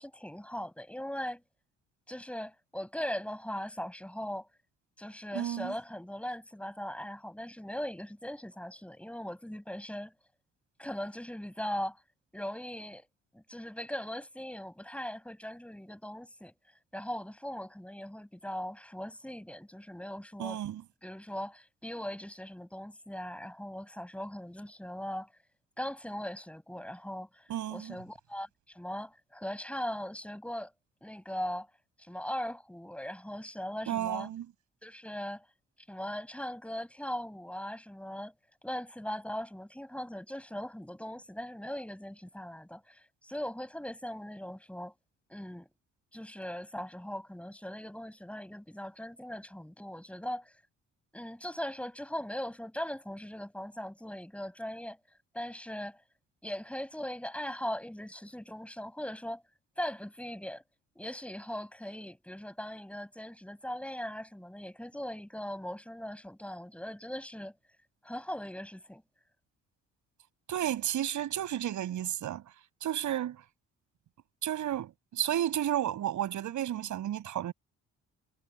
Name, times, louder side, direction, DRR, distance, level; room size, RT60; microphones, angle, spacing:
voice 1, 0.0-1.4 2.1-4.5 5.0-10.1 10.8-12.0 12.3-13.1 13.3-16.5 16.9-20.6 21.0-25.3 25.8-30.7 31.0-31.7 32.0-34.3 34.8-35.4 35.9-38.3 38.6-44.9 45.3-45.7 46.1-50.5 51.1-55.0 55.3-56.0 56.4-59.4 59.8-60.6 60.9-67.5 68.0-69.0, equal, 5° left, 7.9 m, -39 dB
voice 2, 5.3-5.7 20.4-20.8 27.5-28.0 33.9-34.5 70.5-72.4 72.8-73.4 74.4-77.5, right 11 dB, 75° right, 7.3 m, -32 dB
cardioid pair, 90°, 30 cm